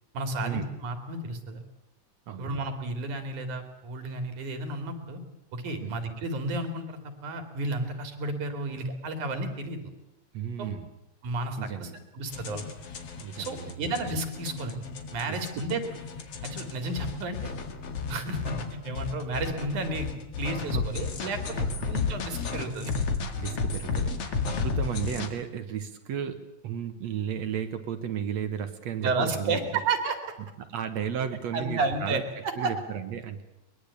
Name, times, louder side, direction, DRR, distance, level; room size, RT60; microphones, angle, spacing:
voice 1, 0.1-1.6 2.4-5.2 5.5-9.9 10.6-10.8 11.2-12.7 13.4-15.8 16.4-17.5 18.1-18.5 18.8-20.1 20.4-22.9 29.0-30.3 31.5-32.7, right 2 dB, 80° right, 7 dB, 4.1 m, -32 dB
voice 2, 2.3-2.6 5.8-6.0 10.3-10.9 11.6-12.0 13.2-13.8 15.3-15.4 20.7-20.8 21.6-21.9 23.4-29.7 30.6-32.2 32.6-33.4, right 8 dB, 65° right, 9 dB, 2.6 m, -34 dB
sound 1, 12.3-25.3, left 5 dB, 55° left, 2.8 m, -33 dB
22.5 x 21.5 x 8.4 m, 0.91 s
omnidirectional pair, 3.4 m